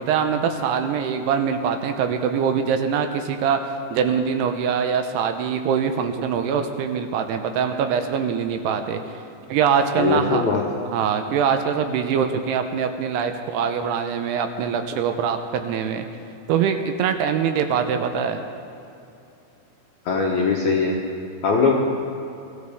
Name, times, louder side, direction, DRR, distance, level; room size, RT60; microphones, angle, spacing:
voice 1, 0.0-9.2 9.5-10.5 10.9-16.1 16.5-18.5, right 7 dB, 85° right, 7 dB, 2.7 m, -23 dB
voice 2, 10.0-10.6 20.1-20.9 21.4-21.7, left 5 dB, 70° left, -3 dB, 1.8 m, -20 dB
23.5 x 14.0 x 3.6 m, 2.7 s
omnidirectional pair, 5.0 m